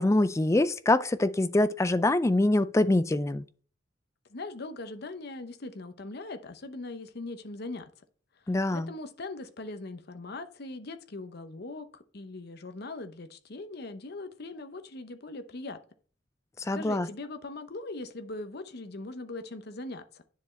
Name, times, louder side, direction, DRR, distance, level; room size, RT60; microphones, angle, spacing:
voice 1, 0.0-3.4 8.5-8.9 16.6-17.1, left 2 dB, 15° left, 0.4 m, -24 dB
voice 2, 4.3-7.9 8.5-15.8 16.7-20.2, left 2 dB, 55° left, 0.8 m, -40 dB
10.0 x 4.6 x 3.3 m
head